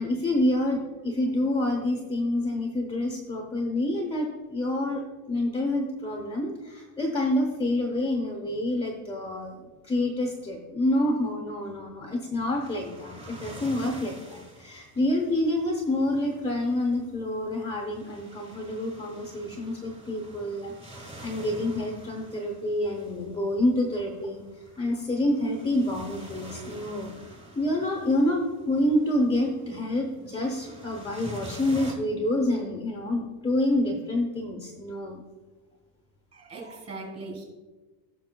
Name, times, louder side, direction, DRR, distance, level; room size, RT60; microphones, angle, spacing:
voice 1, 0.0-9.5 9.8-24.4 24.8-35.2, left 1 dB, 10° left, 0 dB, 0.9 m, -28 dB
sound 1, 12.4-31.9, equal, 15° right, 1.4 m, -47 dB
voice 2, 36.3-37.4, right 2 dB, 30° right, 0 dB, 2.7 m, -39 dB
16.0 x 6.1 x 2.2 m, 1.3 s
cardioid pair, 140°, 48 cm